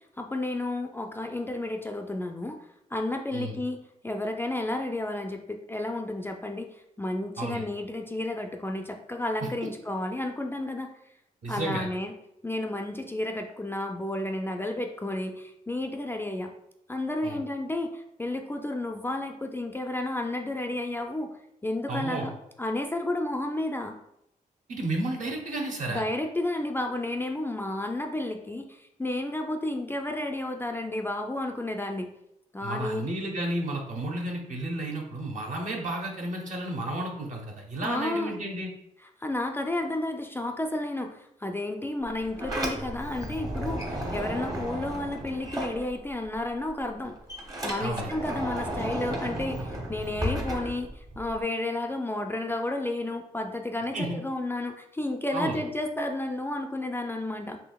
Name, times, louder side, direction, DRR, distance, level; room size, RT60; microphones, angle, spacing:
voice 1, 0.2-2.6 2.9-6.7 7.0-10.9 11.5-12.1 12.4-16.5 16.9-21.3 21.6-22.3 22.6-24.0 25.9-32.1 32.5-33.1 37.8-38.3 39.2-47.1 47.6-57.6, left 1 dB, 15° left, 4 dB, 0.3 m, -32 dB
voice 2, 11.4-11.9 17.2-17.4 21.9-22.3 24.7-26.0 32.6-38.7 47.8-48.1 53.9-54.1 55.3-55.6, right 1 dB, 60° right, 1 dB, 0.8 m, -32 dB
Sliding door, 42.0-46.4 46.7-51.4, right 1 dB, 25° right, 0.8 m, -34 dB
4.0 x 2.7 x 2.3 m, 0.79 s
cardioid pair, 85°, 15 cm